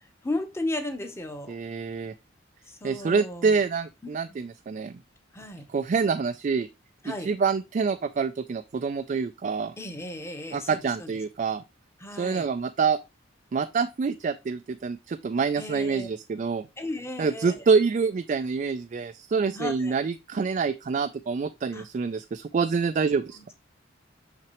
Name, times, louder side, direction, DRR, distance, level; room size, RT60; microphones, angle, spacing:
voice 1, 0.2-1.5 2.7-3.6 4.0-4.4 5.3-5.7 7.0-7.3 9.8-11.1 12.0-12.5 15.6-16.1 16.8-17.6 19.5-20.0 21.7-21.8 23.3-23.6, left 2 dB, 15° left, 0.9 m, -35 dB
voice 2, 1.5-2.1 2.8-5.0 5.7-6.7 7.0-9.8 10.5-11.6 12.2-13.0 13.5-16.7 17.2-23.4, right 5 dB, 40° right, 0.3 m, -26 dB
5.9 x 5.9 x 3.0 m
head